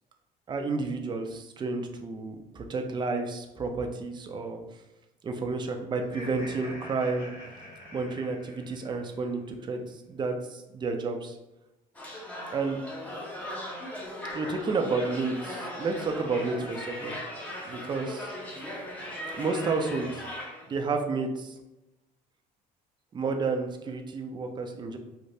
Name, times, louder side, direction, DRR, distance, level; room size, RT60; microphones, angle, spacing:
voice 1, 0.5-4.6 5.2-7.3 7.9-9.8 10.1-11.3 12.5-12.8 14.3-17.1 17.7-18.3 19.4-20.2 20.7-21.5 23.1-25.0, right 3 dB, 25° right, 4 dB, 0.4 m, -31 dB
Laughter, 6.0-9.2, equal, 80° left, 1.4 m, -45 dB
sound 1, 11.9-20.7, equal, 10° left, 0.7 m, -38 dB
3.1 x 2.5 x 2.6 m, 0.96 s
cardioid pair, 110°, 17 cm